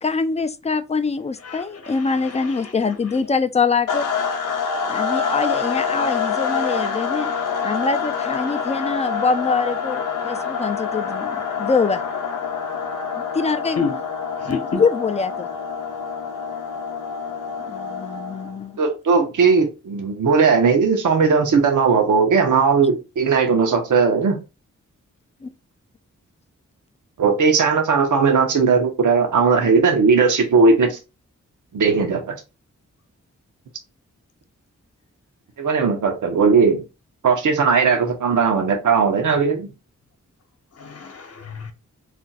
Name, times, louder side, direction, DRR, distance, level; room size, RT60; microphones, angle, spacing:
voice 1, 0.0-4.1 4.9-7.3 7.6-12.0 13.3-13.9 14.8-15.5 17.6-18.8 25.4-25.5, left 4 dB, 20° left, 0.3 m, -24 dB
voice 2, 1.4-2.7 13.8-14.0 14.4-14.8 40.8-41.7, left 5 dB, 50° left, 0.9 m, -29 dB
sound 1, 3.9-18.6, left 6 dB, 85° left, 0.6 m, -26 dB
voice 3, 18.8-24.4 27.2-31.0 31.7-32.4 35.6-36.8 37.2-39.7, right 5 dB, 75° right, 0.8 m, -17 dB
2.5 x 2.2 x 3.9 m
cardioid pair, 60°, 31 cm